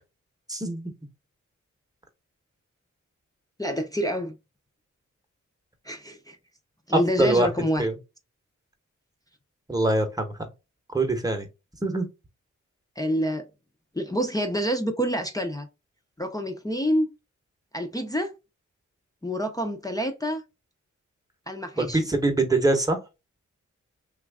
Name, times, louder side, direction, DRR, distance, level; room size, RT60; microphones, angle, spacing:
voice 1, 0.5-0.9 6.9-7.5 7.8-8.0 9.7-10.3 10.9-11.5 11.8-12.1 21.8-23.0, right 2 dB, 10° right, 0.9 m, -23 dB
voice 2, 3.6-4.4 5.9-6.4 6.9-7.8 13.0-13.4 13.9-15.7 16.2-17.1 17.7-18.3 19.2-20.4 21.5-22.0, equal, 10° left, 0.6 m, -27 dB
3.0 x 2.4 x 3.5 m
cardioid pair, 55°, 31 cm